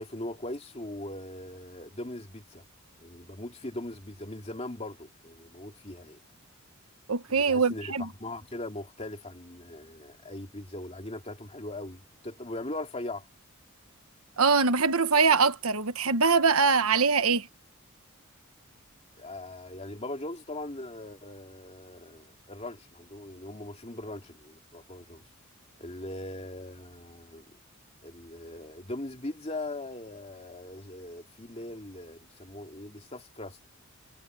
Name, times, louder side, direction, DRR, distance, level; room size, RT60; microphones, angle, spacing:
voice 1, 0.0-2.6 3.0-6.2 7.3-13.2 19.2-25.2 25.8-27.5 28.0-33.6, left 1 dB, 30° left, 2.7 m, -40 dB
voice 2, 7.1-8.1 14.4-17.5, right 5 dB, 90° right, 1.3 m, -23 dB
head